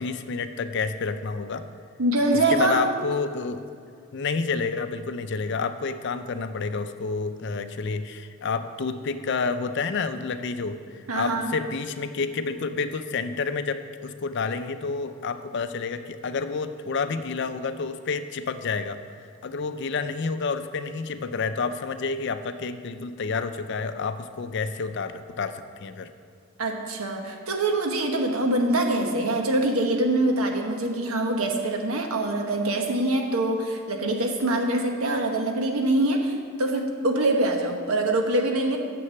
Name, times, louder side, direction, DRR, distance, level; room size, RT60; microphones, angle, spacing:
voice 1, 0.0-1.6 2.5-3.6 4.1-19.1 19.4-26.1, left 4 dB, 55° left, 10 dB, 0.4 m, -29 dB
voice 2, 2.0-2.9 11.1-11.5 26.6-38.8, right 2 dB, 85° right, 3 dB, 1.2 m, -24 dB
6.8 x 6.4 x 7.6 m, 2.3 s
head